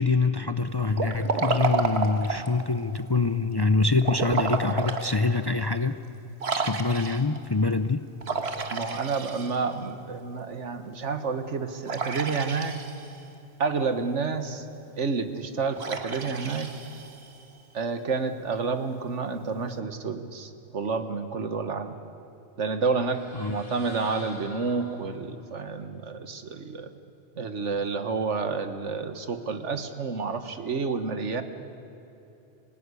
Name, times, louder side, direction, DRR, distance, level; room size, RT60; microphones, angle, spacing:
voice 1, 0.0-6.0 6.5-8.1 23.3-23.6, left 3 dB, 30° left, 11 dB, 0.5 m, -25 dB
Liquid, 0.9-2.6 4.0-5.1 5.6-5.7 6.4-7.4 8.2-9.8 11.9-13.2 15.8-17.4, right 4 dB, 60° right, 1.8 m, -30 dB
voice 2, 8.7-12.8 13.6-14.7 15.0-16.7 17.7-21.9 22.6-26.9 27.4-31.4, right 4 dB, 85° right, 9 dB, 1.7 m, -29 dB
sound 1, 22.7-25.4, left 1 dB, 55° left, 5.8 m, -47 dB
26.5 x 18.0 x 9.8 m, 2.9 s
omnidirectional pair, 1.2 m